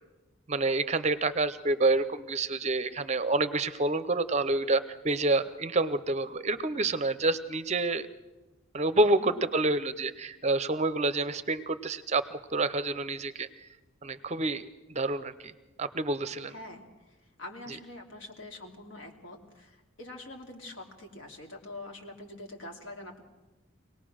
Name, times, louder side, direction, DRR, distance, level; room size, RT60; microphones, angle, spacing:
voice 1, 0.5-8.1 8.7-13.5 14.0-15.5 15.8-16.5, right 2 dB, 35° right, 13 dB, 0.6 m, -28 dB
voice 2, 16.5-23.2, left 2 dB, 70° left, 1 dB, 3.0 m, -45 dB
24.0 x 18.5 x 6.3 m, 1.1 s
head